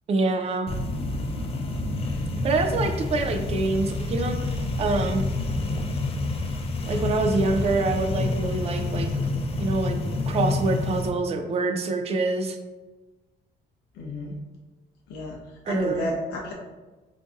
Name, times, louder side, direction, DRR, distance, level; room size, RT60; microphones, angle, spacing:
voice 1, 0.1-0.7 2.4-5.2 6.9-9.1 9.6-10.0 10.3-12.6 15.7-16.0, right 3 dB, 40° right, 6 dB, 0.4 m, -26 dB
sound 1, 0.7-11.1, left 2 dB, 35° left, 0.4 m, -28 dB
voice 2, 2.0-2.3 13.9-14.4 15.1-15.4 15.7-16.5, left 1 dB, 90° left, -1 dB, 0.5 m, -32 dB
3.8 x 2.5 x 2.4 m, 1.2 s
cardioid pair, 135°, 16 cm